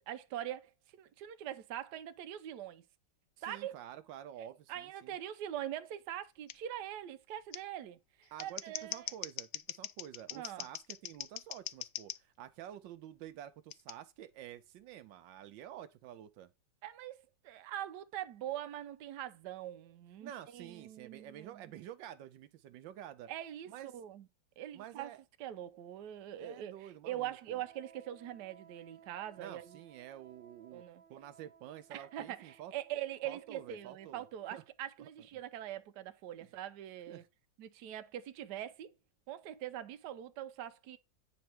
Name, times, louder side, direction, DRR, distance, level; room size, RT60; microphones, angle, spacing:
voice 1, 0.0-2.8 3.4-3.8 4.4-9.1 10.3-10.7 16.8-21.6 23.3-24.2 24.6-25.1 25.4-29.8 30.7-31.0 31.9-37.2 37.6-38.9 39.3-41.0, right 12 dB, 70° right, 1.2 m, -43 dB
voice 2, 3.5-5.2 8.3-16.5 20.2-23.3 23.7-23.9 24.7-25.2 26.4-27.6 29.4-30.8 31.1-32.7 33.2-34.3 34.5-34.6 35.0-35.1 37.1-37.3, right 11 dB, 85° right, 1.4 m, -49 dB
Scissors, 6.5-6.6 7.5-7.6 8.2-12.2 13.7-13.9, left 12 dB, 85° left, 0.7 m, -42 dB
Wind instrument woodwind instrument, 27.4-34.8, right 7 dB, 50° right, 1.3 m, -62 dB
9.5 x 3.2 x 6.0 m
omnidirectional pair, 2.0 m